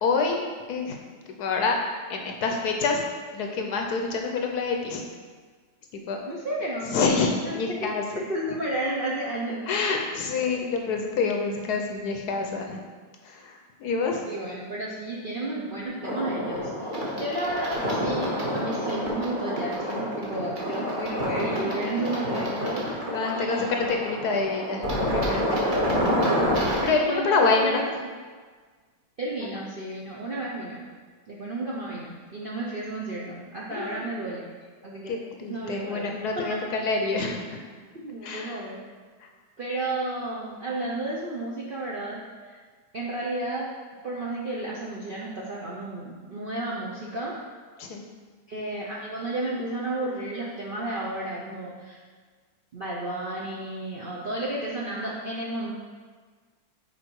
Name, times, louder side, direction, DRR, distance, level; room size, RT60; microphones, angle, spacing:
voice 1, 0.0-1.0 1.4-1.8 2.1-3.0 3.3-5.0 5.9-6.2 6.9-8.0 9.7-12.8 13.2-14.2 23.1-25.8 26.8-27.9 33.7-34.0 35.1-37.6 38.2-38.6 39.2-39.3 47.8-48.0, left 4 dB, 70° left, 2 dB, 1.1 m, -27 dB
voice 2, 6.3-7.0 7.4-9.7 14.2-23.0 23.3-23.7 26.2-27.8 29.2-30.8 31.3-34.4 34.8-35.2 35.5-36.6 38.0-38.8 39.6-42.6 42.9-43.7 44.0-47.4 48.5-52.0 52.7-55.7, right 2 dB, 55° right, -6 dB, 0.6 m, -32 dB
sound 1, 16.0-26.9, equal, 30° right, 1.1 m, -28 dB
6.2 x 4.4 x 4.6 m, 1.5 s
omnidirectional pair, 2.0 m